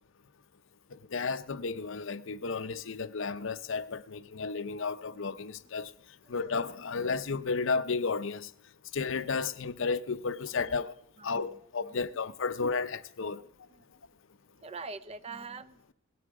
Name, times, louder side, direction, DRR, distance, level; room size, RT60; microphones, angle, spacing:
voice 1, 1.1-5.9 6.3-8.5 8.9-10.9 11.2-13.4, left 4 dB, 60° left, 0.6 m, -33 dB
voice 2, 10.5-10.8 11.2-12.5 13.3-13.9 14.6-15.9, right 4 dB, 30° right, 0.5 m, -46 dB
20.5 x 9.3 x 4.8 m
head